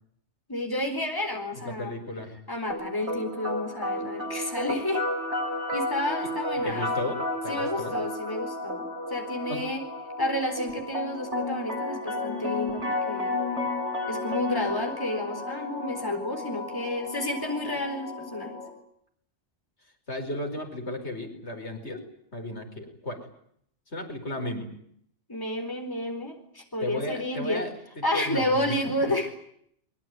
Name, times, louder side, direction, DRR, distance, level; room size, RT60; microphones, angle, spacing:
voice 1, 0.5-1.9 2.5-5.0 5.7-6.9 7.5-9.8 10.2-13.4 14.1-18.6 25.3-27.6 28.0-29.3, left 1 dB, 20° left, 4 dB, 4.2 m, -31 dB
voice 2, 1.6-2.3 6.6-8.0 9.5-9.6 20.1-22.0 22.3-23.2 23.9-24.7 26.8-28.7, left 1 dB, 75° left, 4 dB, 5.5 m, -34 dB
sound 1, 2.7-18.7, left 2 dB, 75° right, 7.9 m, -32 dB
23.0 x 23.0 x 9.5 m, 0.68 s
omnidirectional pair, 1.2 m